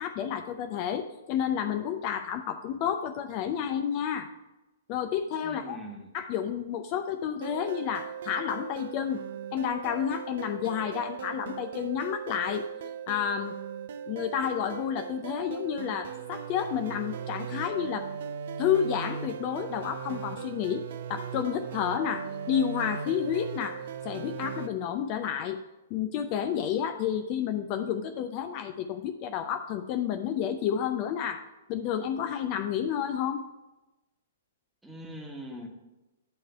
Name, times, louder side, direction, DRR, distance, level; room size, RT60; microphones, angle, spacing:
voice 1, 0.0-4.3 4.9-5.8 6.1-9.2 9.5-12.7 13.1-13.6 14.1-18.1 18.6-20.8 21.1-25.6 25.9-33.4, left 9 dB, 40° left, 7 dB, 0.5 m, -30 dB
voice 2, 5.4-6.1 34.8-35.7, equal, 5° right, 0 dB, 1.3 m, -42 dB
sound 1, 7.4-24.7, right 8 dB, 60° right, 0.5 m, -38 dB
9.5 x 3.2 x 6.7 m, 1.0 s
hypercardioid pair, 120°, 0 cm